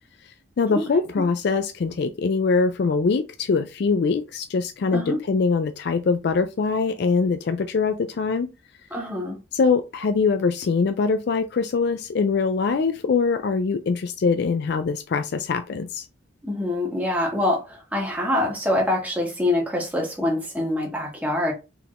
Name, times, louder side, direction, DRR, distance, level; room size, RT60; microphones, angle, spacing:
voice 1, 0.6-8.5 9.5-16.1, left 4 dB, 55° left, 0.3 m, -23 dB
voice 2, 8.9-9.4 16.4-21.5, left 1 dB, 10° right, 1.4 m, -25 dB
4.6 x 3.5 x 2.5 m
head